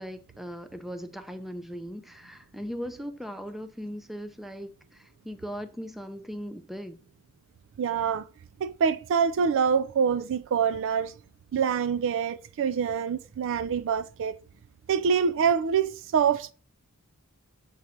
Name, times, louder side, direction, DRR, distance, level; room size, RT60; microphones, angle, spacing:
voice 1, 0.0-7.0, equal, ahead, 0.6 m, -39 dB
voice 2, 7.8-8.2 8.6-11.1 11.5-14.4 14.9-16.5, right 7 dB, 60° right, 0.3 m, -25 dB
7.2 x 3.9 x 4.2 m
head